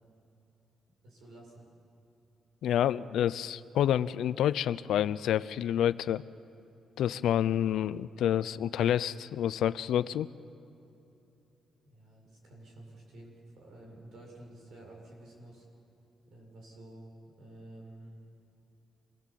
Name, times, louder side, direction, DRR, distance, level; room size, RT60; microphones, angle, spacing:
voice 1, 1.0-1.7 11.8-15.7 16.3-17.1 17.4-18.2, right 1 dB, 70° right, -1 dB, 6.9 m, -51 dB
voice 2, 2.6-6.2 7.0-10.3, left 10 dB, 80° left, 16 dB, 0.5 m, -28 dB
27.0 x 20.0 x 7.6 m, 2.8 s
cardioid pair, 140°, 0 cm